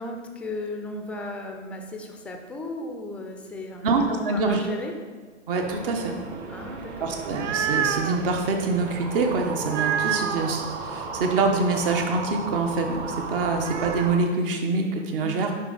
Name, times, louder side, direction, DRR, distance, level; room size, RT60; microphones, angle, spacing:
voice 1, 0.0-3.9 4.2-4.9 6.5-7.1 15.2-15.6, left 2 dB, 5° left, 3 dB, 0.5 m, -35 dB
voice 2, 3.8-4.6 5.5-6.1 7.0-15.5, right 3 dB, 50° right, 3 dB, 1.3 m, -25 dB
sound 1, 5.6-14.2, right 3 dB, 25° right, 0.9 m, -35 dB
sound 2, 7.1-8.2 9.6-10.6 13.4-14.1, right 8 dB, 85° right, 0.5 m, -28 dB
10.5 x 3.9 x 4.1 m, 1.5 s
hypercardioid pair, 115°, 36 cm